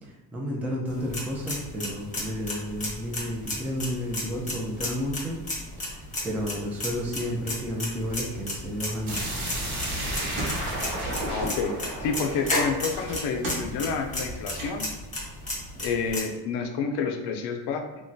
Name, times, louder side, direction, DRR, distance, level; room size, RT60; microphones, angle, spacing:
voice 1, 0.0-5.4 5.9-9.3, equal, 5° right, -3 dB, 0.3 m, -32 dB
sound 1, 0.9-16.2, left 1 dB, 15° left, 0.8 m, -34 dB
sound 2, 8.0-14.7, right 1 dB, 90° right, 1.2 m, -40 dB
sound 3, 9.1-13.8, right 1 dB, 55° right, 1.1 m, -33 dB
voice 2, 11.3-11.7 12.0-14.9 15.8-17.8, left 5 dB, 65° left, 4 dB, 0.6 m, -29 dB
3.1 x 2.2 x 2.6 m, 1.1 s
cardioid pair, 100°, 45 cm